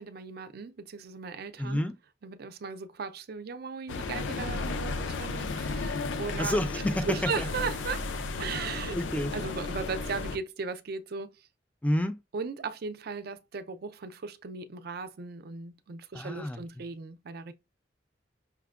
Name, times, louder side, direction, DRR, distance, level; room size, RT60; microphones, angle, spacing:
voice 1, 0.0-1.8 2.2-6.6 7.1-8.1 8.4-9.0 9.3-11.5 12.3-17.5, right 4 dB, 55° right, 0.4 m, -37 dB
voice 2, 1.6-1.9 5.4-5.5 6.4-7.5 8.4-9.3 11.8-12.2 16.1-16.6, left 1 dB, 10° left, 0.3 m, -30 dB
sound 1, 3.9-10.4, left 3 dB, 85° left, 0.5 m, -34 dB
5.7 x 2.1 x 2.3 m
head